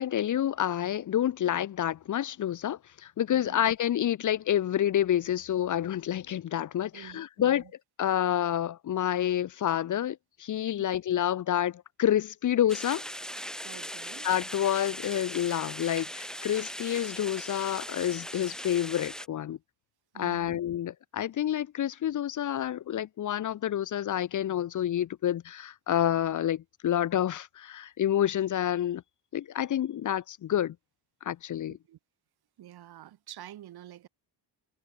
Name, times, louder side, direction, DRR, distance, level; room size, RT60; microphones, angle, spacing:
voice 1, 0.0-7.6 8.0-13.0 14.2-19.6 20.1-29.0 29.3-30.8 31.2-31.8, left 11 dB, 45° left, 0.6 m, -28 dB
voice 2, 6.9-7.7 13.6-14.3 20.1-20.6 31.7-32.0 32.6-34.1, right 12 dB, 60° right, 1.2 m, -48 dB
sound 1, 12.7-19.3, equal, ahead, 1.5 m, -39 dB
wide cardioid pair, 170°, 43 cm